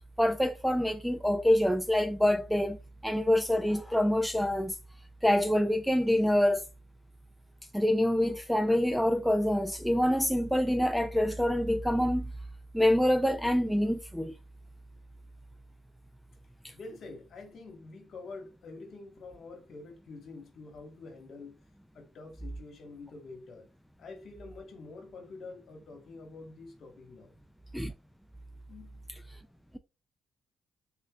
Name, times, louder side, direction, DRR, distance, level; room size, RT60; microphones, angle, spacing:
voice 1, 0.2-2.8 3.0-4.7 5.2-6.6 7.7-12.3 12.7-14.3 27.7-27.9, left 1 dB, ahead, 0.4 m, -26 dB
voice 2, 16.7-21.6 21.9-23.7 24.0-27.3 28.7-29.0, left 3 dB, 60° left, 1.3 m, -47 dB
3.7 x 3.3 x 2.3 m
cardioid pair, 90°, 0 cm